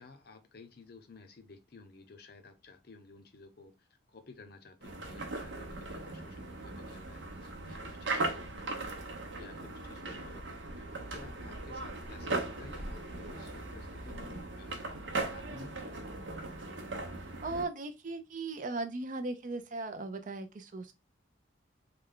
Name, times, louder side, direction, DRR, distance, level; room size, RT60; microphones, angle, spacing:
voice 1, 0.0-3.7 4.1-14.9 15.3-15.8, left 3 dB, 55° left, 0.6 m, -54 dB
sound 1, 4.8-17.6, right 2 dB, 80° right, 0.8 m, -39 dB
voice 2, 17.4-20.9, right 2 dB, 45° right, 0.5 m, -37 dB
3.3 x 2.2 x 3.7 m
head